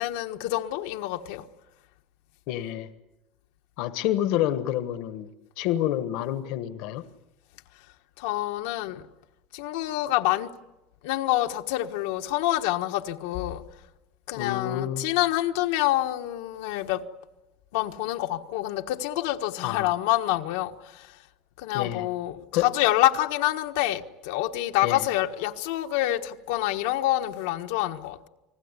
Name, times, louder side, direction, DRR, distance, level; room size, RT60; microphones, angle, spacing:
voice 1, 0.0-1.5 8.2-9.1 9.5-10.5 11.0-13.6 14.3-17.0 17.7-21.1 21.6-28.3, left 15 dB, 75° left, 1.4 m, -27 dB
voice 2, 2.5-2.9 3.8-5.3 5.6-7.0 14.4-15.1 19.6-19.9 21.7-22.1 22.5-22.7 24.8-25.0, left 12 dB, 55° left, 1.2 m, -28 dB
29.5 x 20.0 x 9.8 m
cardioid pair, 175°, 0 cm